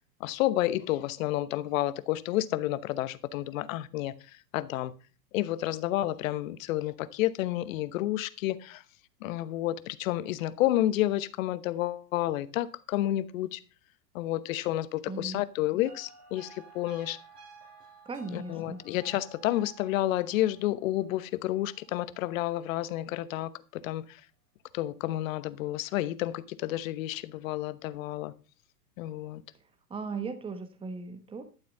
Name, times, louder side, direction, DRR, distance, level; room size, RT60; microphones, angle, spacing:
voice 1, 0.2-4.9 5.3-8.8 9.2-13.6 14.1-17.2 18.3-24.2 24.7-28.3 29.0-29.4, left 14 dB, 55° left, 1.1 m, -30 dB
voice 2, 15.1-15.4 18.0-18.8 29.5-29.6 29.9-31.4, right 4 dB, 10° right, 1.3 m, -37 dB
sound 1, 15.8-23.0 25.4-25.8, right 4 dB, 70° right, 6.3 m, -55 dB
12.0 x 7.3 x 5.4 m
hypercardioid pair, 120°, 49 cm